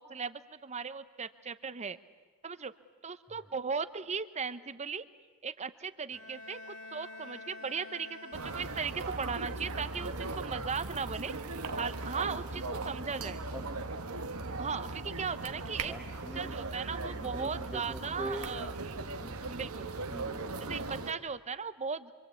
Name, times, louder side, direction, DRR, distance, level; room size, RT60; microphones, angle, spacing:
voice 1, 0.0-2.0 2.4-2.7 3.0-5.1 5.4-11.3 11.8-13.4 14.6-15.9 16.3-18.7 19.5-19.9 20.6-22.1, right 5 dB, 30° right, 13 dB, 0.9 m, -37 dB
Bowed string instrument, 6.1-9.3, left 2 dB, 60° left, 4.1 m, -48 dB
sound 1, 8.3-21.1, right 3 dB, 70° right, 1.4 m, -38 dB
voice 2, 13.5-13.8 15.8-16.5 17.1-18.5 19.2-19.6 20.1-20.5, right 1 dB, 5° right, 1 dB, 1.5 m, -43 dB
26.0 x 25.0 x 8.5 m, 1.4 s
head